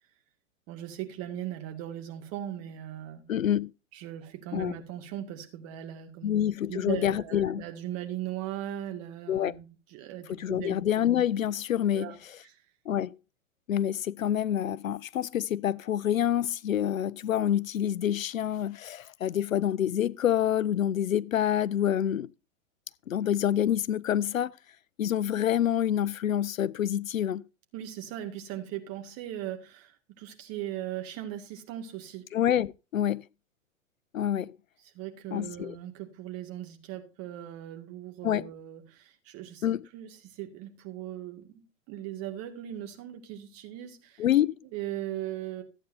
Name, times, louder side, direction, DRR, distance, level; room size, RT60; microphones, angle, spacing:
voice 1, 0.7-3.3 3.9-6.4 6.7-10.8 11.9-12.2 12.4-12.6 27.7-32.3 34.9-39.6 39.9-44.3 44.7-45.6, right 12 dB, 35° right, 2.2 m, -39 dB
voice 2, 3.3-3.7 4.5-4.7 6.2-7.6 9.3-9.5 10.3-12.1 12.9-13.2 13.7-22.3 23.1-24.5 25.0-27.4 32.3-33.2 34.1-34.6 35.3-35.7 38.2-38.4 39.6-39.9 44.2-44.6, left 10 dB, 85° left, 0.6 m, -27 dB
14.5 x 8.9 x 2.7 m
hypercardioid pair, 115°, 39 cm